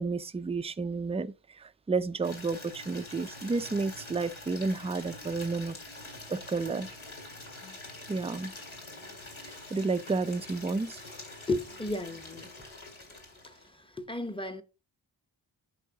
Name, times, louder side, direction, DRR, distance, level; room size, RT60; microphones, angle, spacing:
voice 1, 0.0-5.8 6.3-6.9 8.1-8.5 9.4-11.0, right 4 dB, 15° right, 0.3 m, -31 dB
Water tap faucet / Liquid, 2.2-13.8, left 2 dB, 85° left, 2.3 m, -46 dB
voice 2, 11.5-12.5 13.4-13.5 13.9-14.6, left 2 dB, 10° left, 0.9 m, -33 dB
8.4 x 5.4 x 3.7 m
wide cardioid pair, 60°, 47 cm